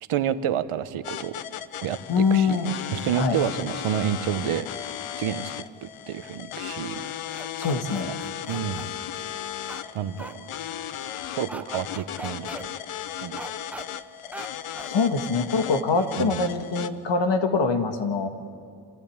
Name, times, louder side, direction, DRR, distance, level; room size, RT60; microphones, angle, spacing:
voice 1, 0.1-1.3 1.8-2.6 2.9-4.7 5.1-7.0 7.4-7.5 7.9-8.0 8.5-9.0 9.9-10.5 11.4-12.7 13.2-13.4 16.2-16.5, right 10 dB, 85° right, 13 dB, 1.1 m, -29 dB
sound 1, 1.0-16.9, left 10 dB, 85° left, 0.9 m, -36 dB
voice 2, 2.1-2.7 3.1-3.4 7.6-8.1 14.9-18.3, left 4 dB, 60° left, 7 dB, 1.8 m, -24 dB
sound 2, 7.3-8.9 9.7-9.8 10.2-10.3 11.5-11.6 11.9-12.6 13.4-13.9 14.3-14.5 14.8-14.9, right 1 dB, 5° right, 0.8 m, -39 dB
27.0 x 14.5 x 8.8 m, 2.6 s
wide cardioid pair, 125°, 49 cm